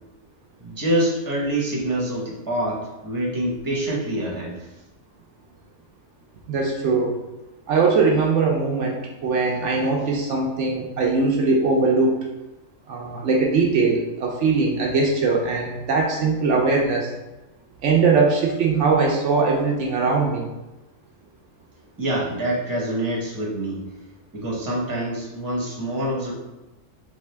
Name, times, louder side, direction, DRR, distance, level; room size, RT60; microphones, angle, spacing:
voice 1, 0.6-4.6 22.0-23.8 24.3-26.3, right 1 dB, 15° right, -4 dB, 1.0 m, -26 dB
voice 2, 6.5-7.1 7.7-12.2 12.9-17.1 17.8-20.5, right 4 dB, 70° right, -1 dB, 0.9 m, -21 dB
3.6 x 3.5 x 3.3 m, 1.0 s
omnidirectional pair, 1.3 m